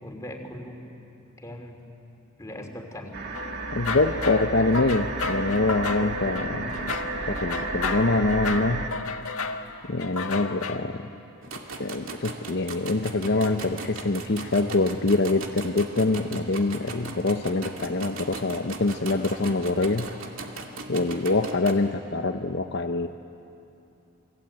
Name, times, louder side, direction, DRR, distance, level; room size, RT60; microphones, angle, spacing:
voice 1, 0.0-0.9 1.4-1.8 2.4-3.2 4.2-4.7, left 1 dB, 15° left, 2 dB, 3.2 m, -39 dB
sound 1, 3.1-8.9, right 3 dB, 50° right, 1.8 m, -33 dB
sound 2, 3.3-10.8, left 3 dB, 85° left, 1.6 m, -32 dB
voice 2, 3.7-7.0 7.3-8.8 9.9-11.0 11.8-20.1 20.9-23.1, left 2 dB, 55° left, 5 dB, 0.8 m, -25 dB
sound 3, 11.4-21.7, right 3 dB, 65° right, 2.4 m, -39 dB
29.5 x 22.5 x 9.0 m, 2.7 s
head